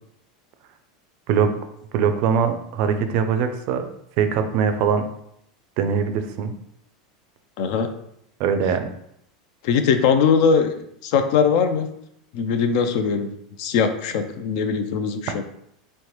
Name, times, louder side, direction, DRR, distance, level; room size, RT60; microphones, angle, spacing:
voice 1, 1.9-3.9 4.2-5.1 5.8-6.5 8.4-8.9, right 6 dB, 55° right, 8 dB, 0.4 m, -22 dB
voice 2, 7.6-7.9 9.6-10.7 11.0-11.9 12.3-13.3 13.6-15.3, left 6 dB, 65° left, 8 dB, 0.4 m, -20 dB
3.1 x 2.1 x 2.9 m, 0.74 s
hypercardioid pair, 110°, 4 cm